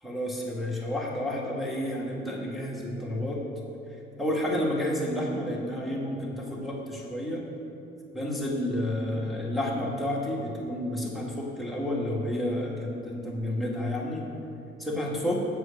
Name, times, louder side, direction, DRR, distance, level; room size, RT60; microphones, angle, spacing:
voice 1, 0.0-3.4 4.2-7.5 8.1-14.2 14.8-15.5, left 1 dB, ahead, -4 dB, 1.8 m, -30 dB
7.9 x 4.9 x 7.3 m, 2.8 s
cardioid pair, 90°, 20 cm